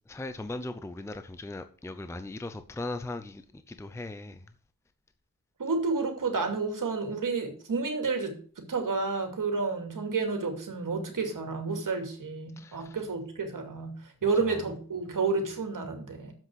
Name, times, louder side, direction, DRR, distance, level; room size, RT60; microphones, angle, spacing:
voice 1, 0.1-4.4 12.6-13.0 14.2-14.6, left 2 dB, 10° left, 0.6 m, -39 dB
voice 2, 5.6-16.3, right 4 dB, 65° right, 2.5 m, -30 dB
7.5 x 6.4 x 7.6 m
wide cardioid pair, 125°, 35 cm